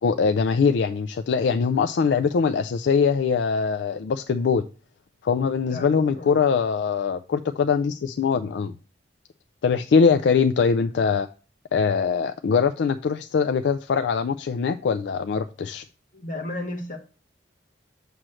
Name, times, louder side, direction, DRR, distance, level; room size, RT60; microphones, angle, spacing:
voice 1, 0.0-4.6 5.2-8.7 9.6-11.3 11.7-15.8, left 5 dB, 75° left, 0.4 m, -22 dB
voice 2, 5.7-6.3 16.1-17.0, left 1 dB, 45° left, 1.3 m, -33 dB
7.6 x 3.1 x 6.2 m
head